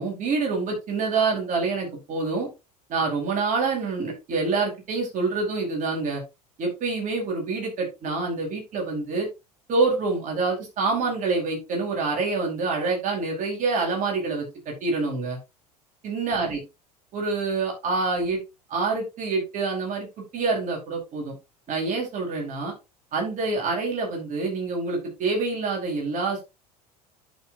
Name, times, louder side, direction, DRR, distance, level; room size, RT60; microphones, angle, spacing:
voice 1, 0.0-2.5 2.9-6.2 6.6-9.3 9.7-15.4 16.0-16.6 17.1-18.4 18.7-20.1 20.3-21.3 21.7-22.7 23.1-26.4, right 3 dB, 40° right, 0 dB, 4.8 m, -26 dB
11.0 x 6.6 x 2.8 m, 0.25 s
figure-of-eight pair, 70°, 20 cm